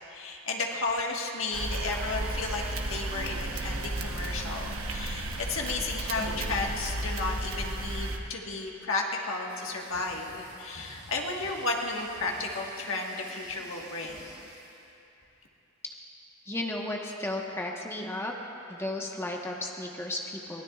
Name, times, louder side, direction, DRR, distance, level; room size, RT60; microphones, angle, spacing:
voice 1, 0.1-14.3, left 3 dB, 70° left, 0 dB, 1.5 m, -33 dB
sound 1, 1.5-8.2, right 2 dB, 80° right, 1.1 m, -33 dB
sound 2, 9.5-14.9, right 1 dB, 20° right, 2.8 m, -52 dB
voice 2, 16.5-18.3 18.7-20.6, left 1 dB, 10° left, -1 dB, 1.2 m, -34 dB
23.0 x 17.0 x 2.4 m, 2.8 s
head